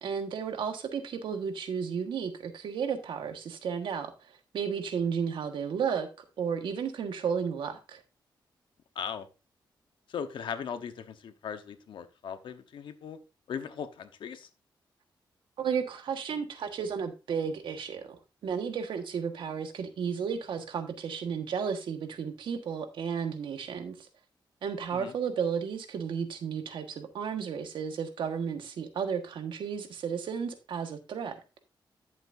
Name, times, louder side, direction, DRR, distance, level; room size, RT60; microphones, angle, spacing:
voice 1, 0.0-4.1 4.5-8.0 15.6-18.1 18.4-23.9 24.6-31.3, right 6 dB, 85° right, 1.5 m, -33 dB
voice 2, 8.9-9.3 10.1-13.2 13.5-14.5 24.9-25.1, left 7 dB, 80° left, 1.0 m, -38 dB
11.5 x 7.2 x 2.6 m
cardioid pair, 95°, 8 cm